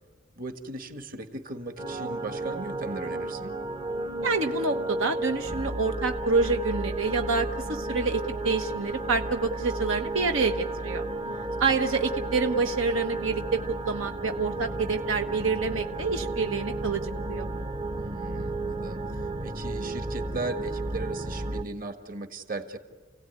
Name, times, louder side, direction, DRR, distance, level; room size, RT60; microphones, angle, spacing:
voice 1, 0.4-3.5 11.3-11.8 17.9-22.8, right 2 dB, 45° right, 6 dB, 1.6 m, -37 dB
sound 1, 1.8-21.6, right 2 dB, 25° right, 0.7 m, -33 dB
voice 2, 4.2-11.0 11.6-17.5, right 4 dB, 80° right, 5 dB, 1.1 m, -27 dB
29.5 x 17.0 x 9.5 m, 1.4 s
head